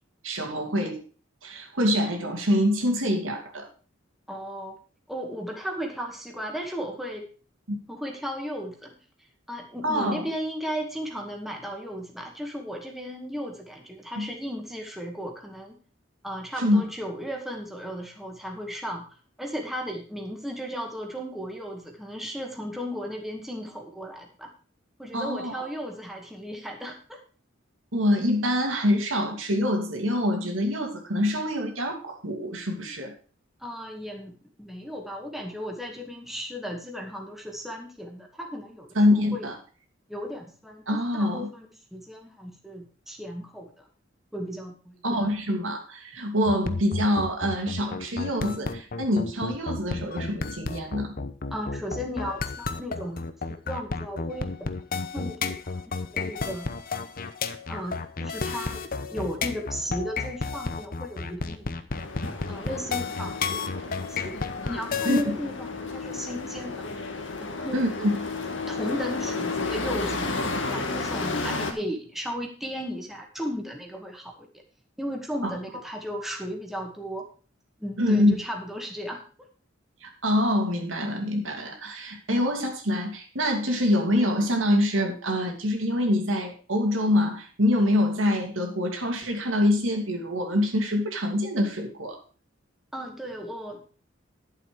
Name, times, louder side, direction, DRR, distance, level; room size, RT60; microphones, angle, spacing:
voice 1, 0.2-1.0 1.4-3.7 7.7-7.8 9.8-10.2 14.2-14.3 16.6-16.8 25.1-25.6 27.9-33.1 39.0-39.5 40.9-41.5 45.0-51.1 65.0-65.2 67.7-68.1 75.4-75.5 78.0-78.3 80.0-92.2, left 1 dB, 90° right, 2 dB, 2.7 m, -25 dB
voice 2, 4.3-4.8 5.1-7.3 7.9-8.9 9.5-15.8 16.2-19.1 19.4-24.5 25.0-27.2 33.6-39.5 40.1-43.8 44.3-45.0 51.5-53.2 53.7-54.7 55.0-56.7 57.7-61.9 62.5-64.4 64.7-66.9 67.4-67.8 68.7-74.5 75.0-77.3 77.8-79.5 92.9-93.8, equal, ahead, 1 dB, 2.0 m, -35 dB
sound 1, 46.5-65.2, left 4 dB, 45° left, 0.9 m, -32 dB
sound 2, 61.9-71.7, left 3 dB, 70° left, 1.8 m, -32 dB
11.5 x 7.6 x 5.0 m, 0.38 s
head